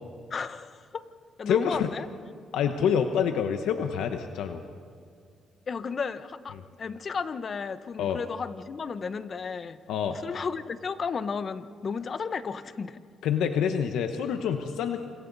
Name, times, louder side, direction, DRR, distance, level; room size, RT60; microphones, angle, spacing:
voice 1, 0.3-1.1 1.4-2.1 5.7-9.8 10.1-13.0, left 5 dB, 45° left, 12 dB, 1.0 m, -33 dB
voice 2, 1.5-1.9 2.5-4.6 8.0-8.2 9.9-10.2 13.2-15.0, left 7 dB, 85° left, 6 dB, 1.0 m, -27 dB
27.5 x 27.0 x 4.1 m, 2.3 s
cardioid pair, 90°, 0 cm